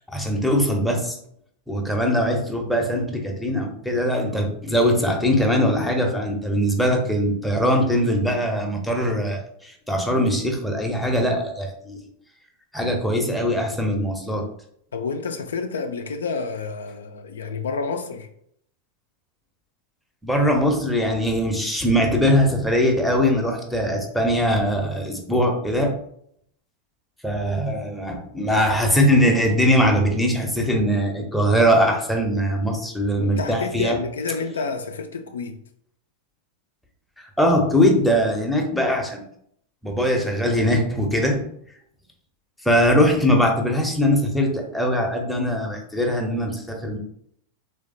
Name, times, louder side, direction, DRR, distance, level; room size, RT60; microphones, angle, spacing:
voice 1, 0.1-1.2 1.7-12.0 12.7-14.5 20.2-25.9 27.2-34.0 37.2-39.2 39.8-41.5 42.6-47.0, equal, ahead, 0.6 m, -21 dB
voice 2, 14.9-18.3 33.2-35.6, left 4 dB, 65° left, 0.3 m, -29 dB
3.4 x 3.2 x 2.5 m
figure-of-eight pair, 90°, 0 cm